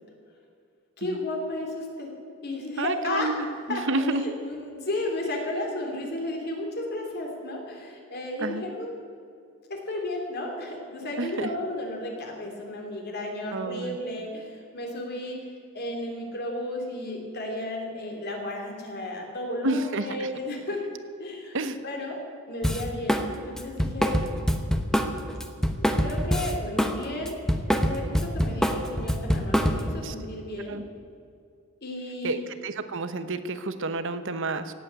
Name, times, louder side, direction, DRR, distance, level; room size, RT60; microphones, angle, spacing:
voice 1, 1.0-2.1 2.4-3.3 3.7-8.9 9.7-20.8 21.2-21.6 21.8-22.2 22.5-24.2 25.8-27.4 27.7-30.8 31.8-32.4, left 1 dB, 50° left, 1 dB, 3.2 m, -33 dB
voice 2, 2.8-4.2 8.4-8.6 11.2-11.5 13.5-14.0 19.6-20.3 21.5-21.8 30.0-30.1 30.7-30.8 32.2-32.4 32.6-34.7, right 2 dB, 60° right, 11 dB, 0.9 m, -29 dB
Drum kit, 22.6-23.3 23.6-27.0 27.2-30.0, equal, ahead, 0.9 m, -25 dB
17.5 x 8.5 x 8.3 m, 2.4 s
head